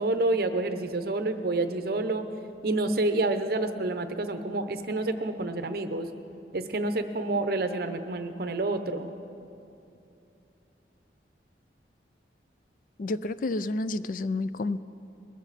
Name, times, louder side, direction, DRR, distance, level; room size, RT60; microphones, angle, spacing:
voice 1, 0.0-2.2 2.6-6.1 6.5-9.1, right 2 dB, 55° right, 9 dB, 0.8 m, -28 dB
voice 2, 13.0-14.8, left 2 dB, 50° left, 15 dB, 0.4 m, -30 dB
21.0 x 14.0 x 4.2 m, 2.8 s
head